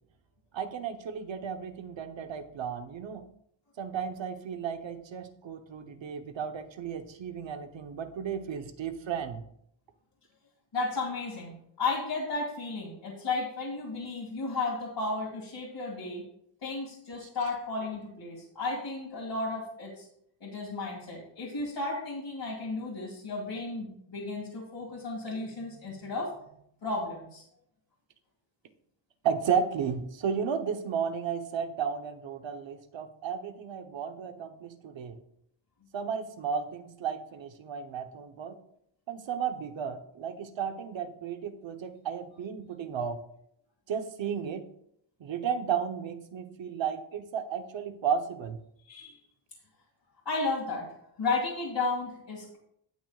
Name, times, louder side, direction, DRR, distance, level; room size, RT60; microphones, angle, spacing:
voice 1, 0.5-3.2 3.8-9.4 17.2-17.3 29.2-35.2 35.9-38.6 39.1-43.2 43.9-44.7 45.2-48.6, right 7 dB, 70° right, 7 dB, 1.0 m, -33 dB
voice 2, 10.7-16.2 16.6-20.1 20.4-26.3 26.8-27.4 48.8-49.2 50.3-50.9 51.2-52.6, left 3 dB, 60° left, -5 dB, 2.4 m, -33 dB
17.0 x 6.2 x 2.4 m, 0.72 s
wide cardioid pair, 120°, 47 cm